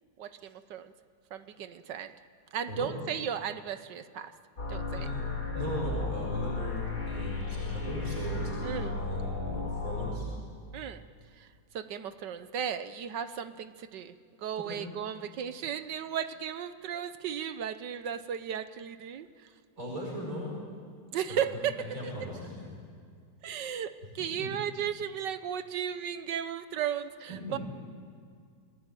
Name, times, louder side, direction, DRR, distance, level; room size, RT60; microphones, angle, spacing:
voice 1, 0.2-0.9 1.3-2.1 2.5-4.3 4.7-5.1 8.6-8.9 10.7-11.0 11.4-11.5 11.7-19.5 21.1-22.1 23.4-27.6, right 8 dB, 70° right, 12 dB, 1.5 m, -35 dB
sound 1, 4.6-10.1, left 3 dB, 55° left, 4.4 m, -34 dB
voice 2, 5.5-10.3 14.6-14.8 19.8-20.5 21.3-21.6 21.9-22.7 24.4-24.5 27.3-27.6, equal, 45° right, -2 dB, 5.7 m, -38 dB
28.5 x 19.0 x 9.1 m, 2.2 s
omnidirectional pair, 2.1 m